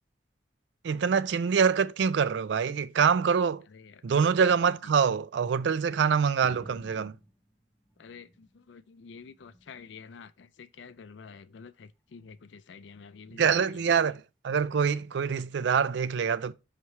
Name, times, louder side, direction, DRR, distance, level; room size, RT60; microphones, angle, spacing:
voice 1, 0.8-3.6 4.0-7.1 13.4-16.5, right 6 dB, 70° right, 0.4 m, -25 dB
voice 2, 3.7-4.0 8.0-13.8, left 5 dB, 75° left, 0.4 m, -49 dB
sound 1, 6.4-8.7 9.0-10.0 10.8-11.2 12.2-12.4, equal, 10° left, 0.6 m, -52 dB
5.8 x 3.2 x 5.3 m
head